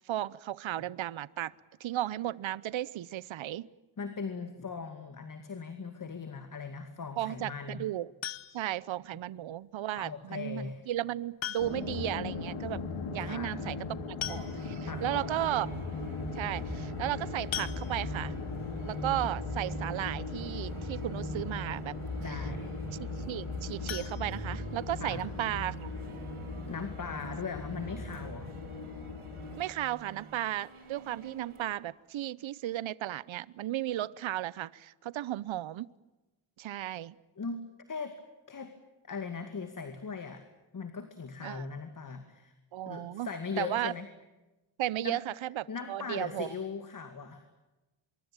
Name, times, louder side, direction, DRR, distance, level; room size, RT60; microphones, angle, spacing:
voice 1, 0.1-1.5 1.8-3.7 7.2-8.1 8.5-12.8 13.1-15.7 16.3-18.3 18.8-22.0 22.3-22.4 23.0-25.9 29.6-35.9 36.6-37.1 41.4-41.6 42.7-43.3 43.6-43.9 44.8-46.5, right 13 dB, 70° right, 21 dB, 0.8 m, -35 dB
voice 2, 4.0-7.9 9.9-10.9 13.2-13.6 14.9-15.4 22.2-22.7 25.0-25.2 26.7-28.5 37.4-38.2 38.5-38.7 39.0-40.4 40.7-42.5 42.8-44.1 45.0-45.2 45.7-47.4, left 5 dB, 40° left, 8 dB, 2.3 m, -39 dB
sound 1, 8.2-8.9 10.3-10.4 11.4-12.0 12.3-12.4 12.7-12.8 13.8-13.9 14.2-14.9 15.5-15.6 15.9-16.1 17.5-18.4 23.8-25.0 25.4-25.5 25.9-26.0 26.4-26.5, left 11 dB, 65° left, 1.1 m, -40 dB
sound 2, 11.6-29.6, left 3 dB, 85° left, 3.5 m, -38 dB
sound 3, 14.3-31.7, right 4 dB, 90° right, 7.3 m, -49 dB
25.0 x 23.5 x 8.9 m, 1.1 s
wide cardioid pair, 120°, 49 cm